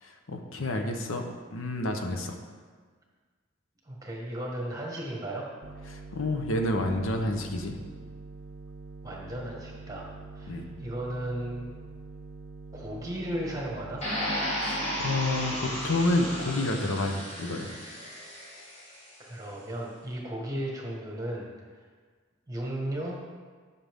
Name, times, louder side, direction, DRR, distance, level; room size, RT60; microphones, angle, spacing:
voice 1, 0.0-2.3 5.9-7.8 10.5-10.7 14.6-17.7, left 1 dB, 80° left, 4 dB, 0.8 m, -29 dB
voice 2, 3.9-5.5 9.0-10.1 10.3-11.7 12.7-14.0 19.2-21.5 22.5-23.2, right 1 dB, 15° right, -2 dB, 1.4 m, -35 dB
sound 1, 5.6-16.5, right 3 dB, 60° right, 0.6 m, -45 dB
sound 2, 14.0-19.0, equal, 30° left, 1.8 m, -34 dB
11.0 x 5.7 x 3.6 m, 1.5 s
head